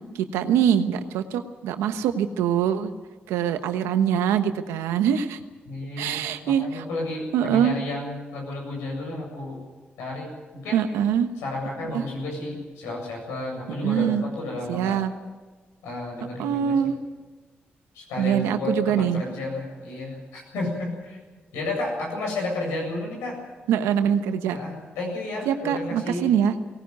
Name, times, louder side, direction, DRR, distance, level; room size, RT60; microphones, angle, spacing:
voice 1, 0.3-2.9 3.3-5.4 6.0-6.8 7.3-7.8 10.7-11.3 11.9-12.0 13.8-14.2 14.7-15.1 16.4-17.0 18.2-19.2 23.7-24.6 25.5-26.5, right 9 dB, 90° right, 9 dB, 1.2 m, -23 dB
voice 2, 5.7-9.6 10.0-10.9 11.4-15.0 15.8-16.9 17.9-21.2 21.5-23.4 24.5-26.3, left 2 dB, 90° left, -1 dB, 7.9 m, -32 dB
18.5 x 18.5 x 9.4 m, 1.3 s
supercardioid pair, 50°, 4 cm